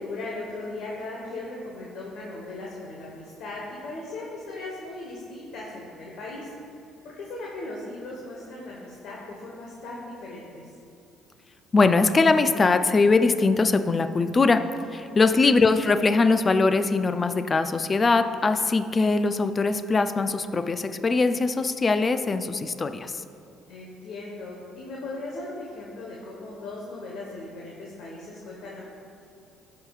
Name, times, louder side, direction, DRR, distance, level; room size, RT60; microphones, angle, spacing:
voice 1, 0.0-6.5 7.0-10.7 15.2-15.5 23.7-28.8, left 2 dB, 70° left, -3 dB, 1.2 m, -38 dB
voice 2, 11.7-14.6 14.9-23.2, left 3 dB, 30° left, 9 dB, 0.4 m, -21 dB
16.0 x 5.7 x 2.4 m, 2.5 s
supercardioid pair, 85°, 0 cm